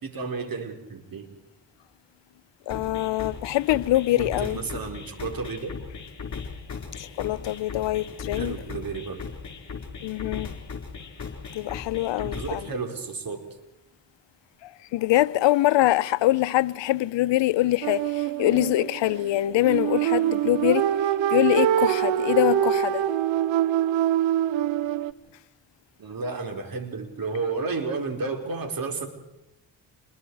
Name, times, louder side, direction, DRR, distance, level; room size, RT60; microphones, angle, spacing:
voice 1, 0.0-1.3 4.1-5.7 8.3-9.2 12.1-13.5 26.0-29.1, right 4 dB, 50° right, 4.5 m, -32 dB
voice 2, 2.7-4.6 7.0-8.5 10.0-10.5 11.5-12.7 14.6-20.9 21.3-23.1, left 15 dB, 70° left, 0.8 m, -24 dB
sound 1, 2.7-12.7, left 5 dB, 40° left, 4.6 m, -38 dB
sound 2, 17.8-25.1, right 11 dB, 80° right, 0.9 m, -24 dB
27.5 x 21.5 x 4.8 m
cardioid pair, 75°, 45 cm